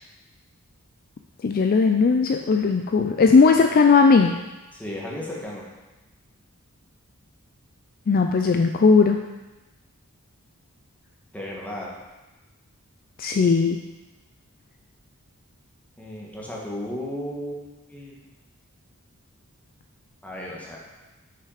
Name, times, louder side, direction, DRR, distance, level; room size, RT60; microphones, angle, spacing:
voice 1, 1.4-4.3 8.1-9.2 13.2-13.8, left 4 dB, 40° left, 5 dB, 0.4 m, -18 dB
voice 2, 4.7-5.6 11.3-11.9 16.0-17.6 17.9-18.2 20.2-20.8, left 1 dB, 5° left, -4 dB, 1.5 m, -34 dB
6.5 x 5.9 x 4.9 m, 1.1 s
head